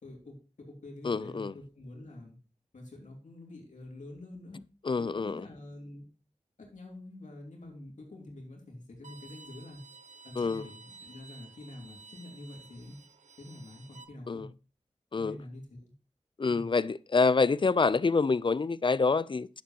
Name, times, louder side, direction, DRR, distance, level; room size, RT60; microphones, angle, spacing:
voice 1, 0.0-2.4 2.7-4.6 5.0-6.1 6.6-9.8 10.2-13.0 13.4-14.5 15.1-15.9 16.5-16.7, left 1 dB, 90° left, 2.9 m, -47 dB
voice 2, 1.0-1.5 4.9-5.5 10.4-10.6 14.3-14.5 15.1-15.4 16.4-19.5, left 4 dB, 40° left, 0.4 m, -26 dB
Bowed string instrument, 9.0-14.0, right 4 dB, 80° right, 1.0 m, -53 dB
10.5 x 7.5 x 2.8 m
wide cardioid pair, 60°, 12 cm